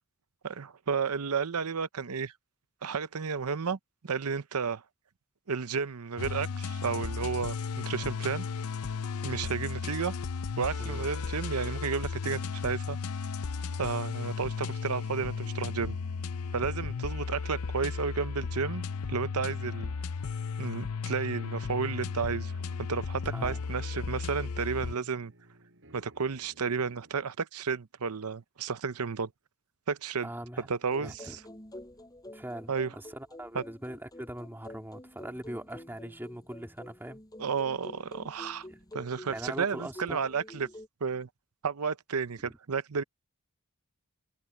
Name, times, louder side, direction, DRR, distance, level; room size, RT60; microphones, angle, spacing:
voice 1, 0.4-2.3 2.8-4.8 5.5-8.5 9.2-10.1 10.6-13.0 13.8-16.0 16.5-19.9 20.6-22.5 22.8-25.3 25.9-29.3 29.9-30.3 30.7-31.4 32.7-32.9 33.5-33.6 37.4-38.6 38.9-40.7 41.0-41.3 41.6-43.0, right 5 dB, 85° right, 0.8 m, -32 dB
sound 1, 6.2-25.0, left 5 dB, 75° left, 0.6 m, -35 dB
voice 2, 10.8-11.4 23.2-23.6 30.2-30.7 31.0-31.4 32.3-37.2 39.3-40.2 42.4-42.6, right 1 dB, 10° right, 2.3 m, -42 dB
sound 2, 15.3-27.3, right 1 dB, 60° right, 5.4 m, -58 dB
sound 3, 30.8-40.9, left 1 dB, 15° left, 7.2 m, -48 dB
head